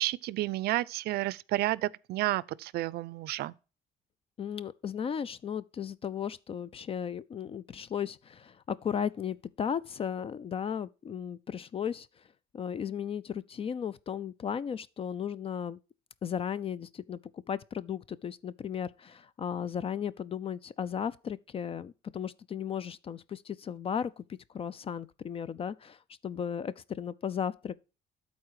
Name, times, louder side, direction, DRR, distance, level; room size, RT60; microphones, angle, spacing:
voice 1, 0.0-3.5, right 16 dB, 70° right, 0.4 m, -31 dB
voice 2, 4.4-12.1 12.5-15.8 16.2-17.2 17.5-24.2 24.5-27.8, left 8 dB, 35° left, 0.4 m, -35 dB
12.0 x 4.2 x 4.8 m
cardioid pair, 110°, 17 cm